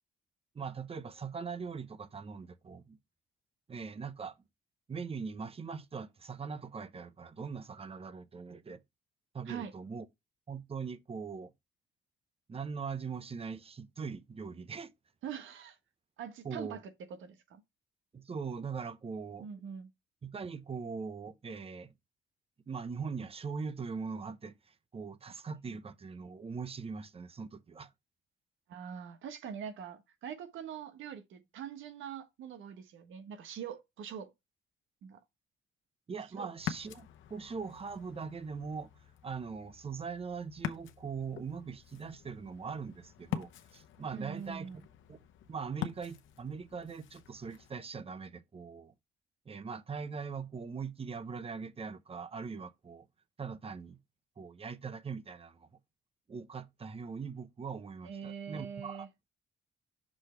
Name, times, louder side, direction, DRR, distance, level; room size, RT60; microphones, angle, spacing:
voice 1, 0.5-3.0 3.7-4.4 4.9-8.8 9.3-10.1 10.5-11.5 12.5-14.9 16.4-16.8 18.1-19.5 20.2-21.9 22.7-27.9 36.1-38.9 39.2-44.7 45.1-45.2 45.5-48.9 49.5-53.1 53.4-54.0 54.4-55.7 56.3-59.1, right 5 dB, 30° right, 0.8 m, -41 dB
voice 2, 15.2-15.8 16.2-16.8 17.2-17.6 19.4-19.9 28.7-34.3 35.0-35.2 36.4-36.5 44.1-44.8 58.0-59.1, right 8 dB, 80° right, 1.3 m, -43 dB
Ocean, 36.6-47.7, left 10 dB, 80° left, 0.9 m, -45 dB
6.2 x 3.2 x 5.8 m
cardioid pair, 90°, 20 cm